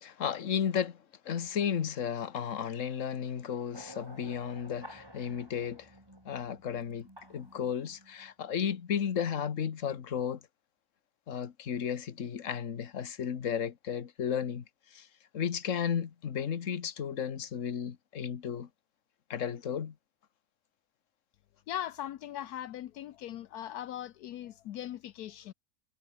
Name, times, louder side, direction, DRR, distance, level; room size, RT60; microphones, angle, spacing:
voice 1, 0.0-5.9 6.2-10.4 11.3-14.6 14.9-15.1 15.3-18.7 19.3-19.9, left 8 dB, 55° left, 1.6 m, -34 dB
sound 1, 3.7-9.0, right 1 dB, 15° right, 6.3 m, -53 dB
voice 2, 21.7-25.5, left 11 dB, 80° left, 1.2 m, -39 dB
omnidirectional pair, 1.7 m